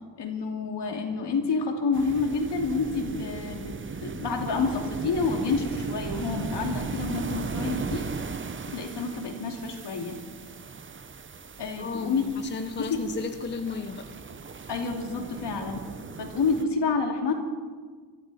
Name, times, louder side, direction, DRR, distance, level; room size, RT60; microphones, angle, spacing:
voice 1, 0.2-3.7 4.0-8.0 8.7-10.2 11.6-12.2 12.8-13.0 14.7-15.9 16.2-17.3, left 4 dB, 70° left, 2 dB, 2.5 m, -28 dB
sound 1, 1.9-16.6, right 5 dB, 30° right, 0.7 m, -37 dB
voice 2, 11.8-14.1, left 4 dB, 25° left, 7 dB, 0.7 m, -34 dB
23.5 x 13.5 x 4.2 m, 1.5 s
wide cardioid pair, 160°, 43 cm